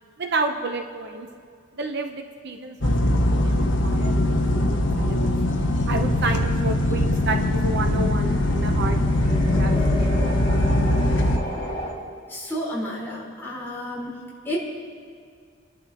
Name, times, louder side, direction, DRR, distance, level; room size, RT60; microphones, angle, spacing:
voice 1, 0.2-1.3 1.7-5.3 5.9-9.3 9.6-10.4, right 3 dB, 60° right, 5 dB, 0.9 m, -31 dB
sound 1, 2.8-11.4, left 1 dB, 65° left, 1.2 m, -21 dB
Loud Drone, 4.8-11.9, left 1 dB, 30° left, 4.4 m, -34 dB
voice 2, 12.3-14.2 14.4-14.6, equal, 10° left, -7 dB, 4.4 m, -31 dB
27.5 x 11.5 x 3.0 m, 2.3 s
head